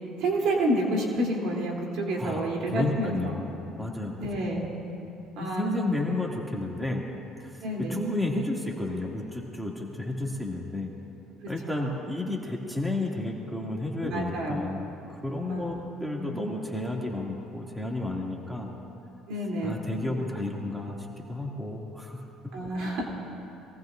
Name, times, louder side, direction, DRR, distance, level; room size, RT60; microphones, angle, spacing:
voice 1, 0.2-3.3 4.2-4.7 5.4-5.8 7.6-8.0 11.4-11.9 14.0-14.7 15.5-15.9 16.2-16.4 19.3-19.8 22.5-23.0, right 1 dB, 65° right, -2 dB, 3.2 m, -29 dB
voice 2, 2.7-4.2 5.4-7.1 7.4-7.6 7.9-10.9 11.5-18.7 19.6-22.2, left 2 dB, 5° right, -2 dB, 2.5 m, -32 dB
23.5 x 19.0 x 2.6 m, 2.8 s
supercardioid pair, 70°, 0 cm